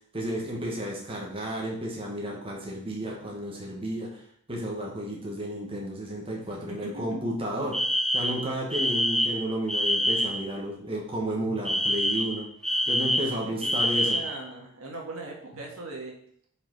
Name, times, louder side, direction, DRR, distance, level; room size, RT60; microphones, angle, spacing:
voice 1, 0.1-4.2 4.5-7.8 8.1-12.5 12.9-14.2, equal, 25° right, -2 dB, 1.4 m, -32 dB
voice 2, 6.5-7.2 13.3-16.1, right 3 dB, 75° right, -1 dB, 1.6 m, -39 dB
Alarm, 7.7-10.5 11.7-14.4, equal, ahead, 0.3 m, -26 dB
5.1 x 4.8 x 4.7 m, 0.63 s
head